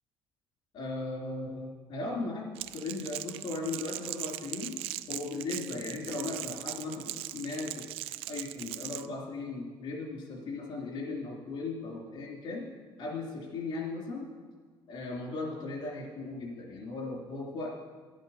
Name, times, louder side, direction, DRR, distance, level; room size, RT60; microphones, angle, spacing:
voice 1, 0.7-2.5 2.7-4.8 5.1-7.7 8.3-12.7 13.0-14.3 14.9-17.7, left 3 dB, 60° left, -2 dB, 3.3 m, -37 dB
Crackle, 2.6-9.1, right 15 dB, 85° right, 0.4 m, -39 dB
11.0 x 10.5 x 5.7 m, 1.5 s
cardioid pair, 145°, 10 cm